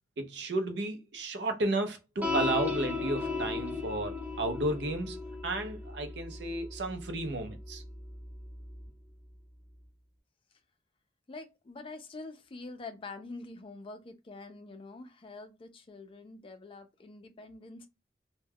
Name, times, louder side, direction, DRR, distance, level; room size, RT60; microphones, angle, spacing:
voice 1, 0.2-5.2 5.4-7.8, right 2 dB, 70° right, 0.6 m, -33 dB
sound 1, 2.2-8.9, left 4 dB, 10° right, 0.6 m, -36 dB
voice 2, 11.3-17.9, left 3 dB, 30° left, 0.4 m, -46 dB
2.2 x 2.1 x 3.3 m
head